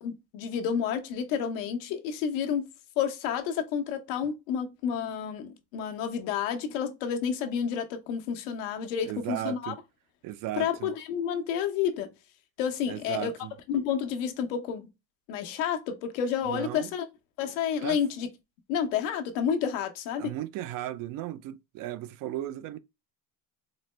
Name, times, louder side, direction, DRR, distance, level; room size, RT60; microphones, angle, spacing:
voice 1, 0.0-2.7 3.0-9.7 10.6-12.1 12.6-13.3 13.7-14.9 15.3-17.1 17.4-18.3 18.7-20.3, left 8 dB, 90° left, 0.9 m, -30 dB
voice 2, 9.1-9.8 10.2-10.9 12.9-13.5 16.5-16.9 17.8-18.0 20.2-22.8, right 14 dB, 60° right, 0.5 m, -36 dB
4.2 x 2.1 x 3.1 m
supercardioid pair, 110°, 38 cm